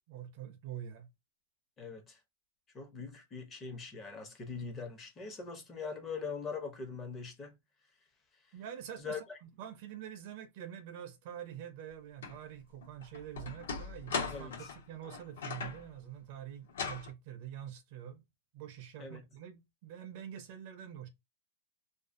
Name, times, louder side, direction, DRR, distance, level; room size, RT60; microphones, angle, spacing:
voice 1, 0.1-1.1 8.5-9.2 9.6-18.2 18.5-21.1, right 10 dB, 40° right, 0.4 m, -46 dB
voice 2, 1.8-2.2 2.7-7.6 8.4-8.5 9.0-9.4 14.3-14.7 19.0-19.2, left 5 dB, 15° left, 0.5 m, -42 dB
sound 1, 12.2-12.4 12.8-15.9 16.7-17.1, left 5 dB, 80° left, 1.2 m, -39 dB
2.4 x 2.3 x 2.4 m
supercardioid pair, 175°, 0 cm